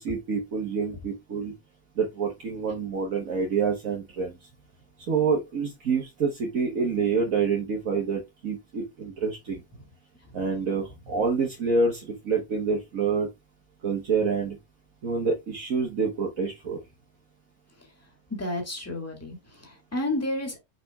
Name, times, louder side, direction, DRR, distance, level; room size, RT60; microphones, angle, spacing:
voice 1, 0.0-1.5 2.0-4.4 5.1-9.6 10.3-13.3 13.8-14.6 15.0-16.8, right 5 dB, 60° right, 1.7 m, -27 dB
voice 2, 18.4-20.6, left 1 dB, 10° left, 2.2 m, -31 dB
6.0 x 5.0 x 3.6 m
omnidirectional pair, 1.6 m